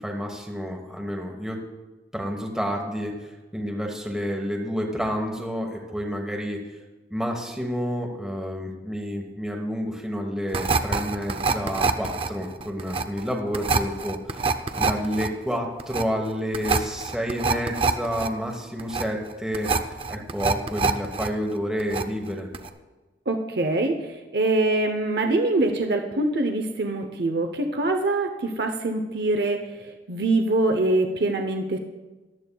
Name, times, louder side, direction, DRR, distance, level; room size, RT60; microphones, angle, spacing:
voice 1, 0.0-1.6 2.1-6.7 7.1-19.7 20.1-22.5, equal, 5° right, 0 dB, 1.2 m, -29 dB
sound 1, 10.5-21.3 21.6-22.3 22.5-22.7, right 4 dB, 30° right, 0.5 m, -25 dB
voice 2, 23.3-31.8, right 2 dB, 65° right, 5 dB, 0.8 m, -24 dB
18.0 x 12.0 x 2.3 m, 1.2 s
head